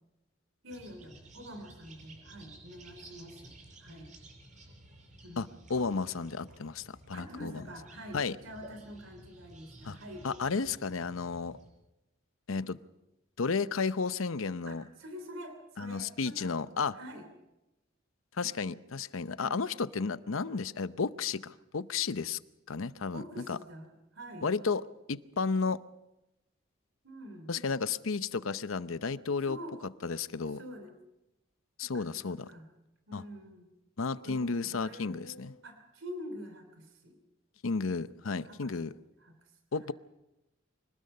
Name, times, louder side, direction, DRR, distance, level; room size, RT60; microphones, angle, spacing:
voice 1, 0.6-3.5 3.8-4.1 5.2-5.4 7.1-10.2 14.6-16.6 16.9-17.3 19.4-19.6 23.1-24.6 27.0-27.5 29.4-29.8 30.5-30.9 31.9-32.7 33.1-33.7 34.2-37.2 38.4-38.8 39.2-39.6, equal, 80° right, 3.1 m, -46 dB
sound 1, 0.7-11.7, right 1 dB, 40° right, 6.3 m, -54 dB
voice 2, 5.4-7.5 8.1-8.4 9.8-10.0 10.2-11.6 12.5-12.8 13.4-14.8 15.8-16.9 18.4-22.4 22.7-23.2 23.5-23.6 24.4-24.8 25.1-25.8 27.5-29.6 30.0-30.6 31.8-32.4 33.1-33.2 34.0-35.5 37.6-38.9 39.7-39.9, left 4 dB, 85° left, 0.7 m, -32 dB
25.5 x 19.5 x 5.6 m
head